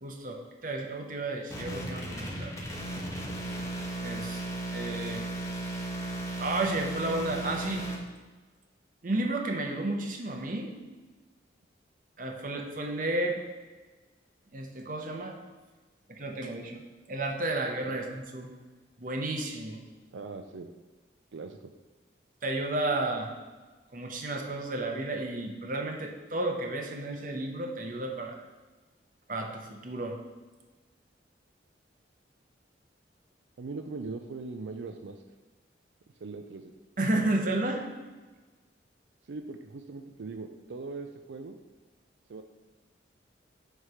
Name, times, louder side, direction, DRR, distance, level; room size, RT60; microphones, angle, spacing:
voice 1, 0.0-2.5 4.0-4.4 4.7-5.2 6.4-7.9 9.0-10.7 12.2-13.4 14.5-15.4 16.1-16.8 17.1-18.5 19.0-19.8 22.4-23.3 23.9-28.4 29.3-30.2 37.0-37.9, right 2 dB, 50° right, 3 dB, 0.9 m, -32 dB
sound 1, 1.5-8.0, right 1 dB, 15° left, 1.1 m, -35 dB
voice 2, 20.1-20.7 21.3-21.7 33.6-35.2 36.2-36.7 39.2-41.6 42.3-42.4, right 3 dB, 90° right, 6 dB, 0.4 m, -40 dB
7.9 x 3.3 x 5.6 m, 1.3 s
head